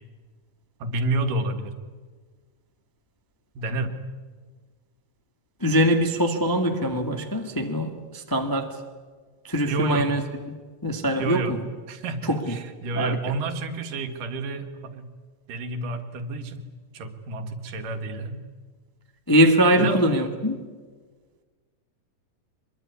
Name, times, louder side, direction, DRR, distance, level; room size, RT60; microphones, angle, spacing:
voice 1, 0.8-1.8 3.5-4.0 9.7-10.1 11.2-11.6 11.9-15.0 15.5-16.6 16.9-18.4 19.8-20.0, right 3 dB, 75° right, 7 dB, 3.3 m, -30 dB
voice 2, 5.6-8.7 9.4-10.2 10.8-11.6 12.3-12.4 12.9-13.2 19.3-20.6, equal, 10° left, 4 dB, 1.0 m, -22 dB
24.5 x 22.5 x 9.7 m, 1.5 s
omnidirectional pair, 3.9 m